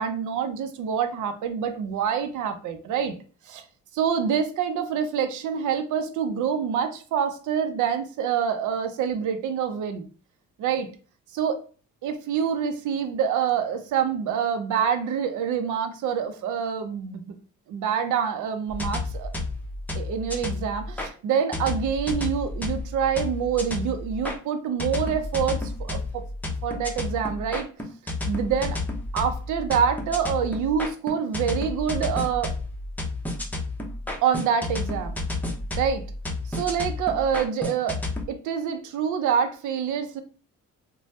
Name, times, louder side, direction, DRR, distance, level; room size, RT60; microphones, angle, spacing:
voice 1, 0.0-3.1 3.5-3.6 3.9-10.1 10.6-10.9 11.3-11.6 12.0-17.4 17.7-19.3 19.9-26.2 26.6-27.7 28.3-28.8 29.1-32.5 34.2-35.2 35.8-36.0 36.5-38.0 38.3-40.2, right 7 dB, 80° right, 8 dB, 0.6 m, -26 dB
sound 1, 18.7-21.1 21.5-24.4 24.8-38.2, left 2 dB, 5° left, 0.7 m, -31 dB
3.1 x 2.2 x 2.8 m, 0.37 s
cardioid pair, 90°, 30 cm